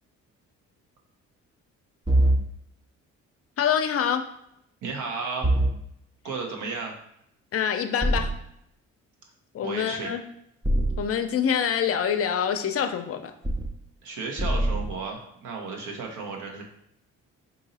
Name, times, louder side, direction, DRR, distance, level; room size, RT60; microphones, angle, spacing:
sound 1, 2.1-2.4 5.4-5.7 8.0-8.3 10.6-11.0 13.4-13.7 14.4-14.9, right 1 dB, 15° right, 0.4 m, -22 dB
voice 1, 3.6-4.2 7.5-8.3 9.5-10.2 11.0-13.3, left 8 dB, 50° left, 7 dB, 0.5 m, -25 dB
voice 2, 4.8-5.6 6.2-6.9 9.6-10.2 14.0-16.6, right 4 dB, 75° right, 1 dB, 1.0 m, -33 dB
3.9 x 2.7 x 4.0 m, 0.75 s
cardioid pair, 90°, 30 cm